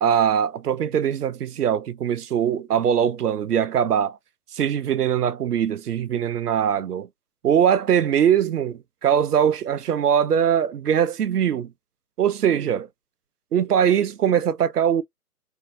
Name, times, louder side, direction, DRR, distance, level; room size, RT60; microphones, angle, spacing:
voice 1, 0.0-4.2 4.5-7.1 7.4-11.7 12.2-12.9 13.5-15.0, right 9 dB, 80° right, 0.7 m, -21 dB
4.5 x 2.8 x 2.7 m
hypercardioid pair, 145°, 46 cm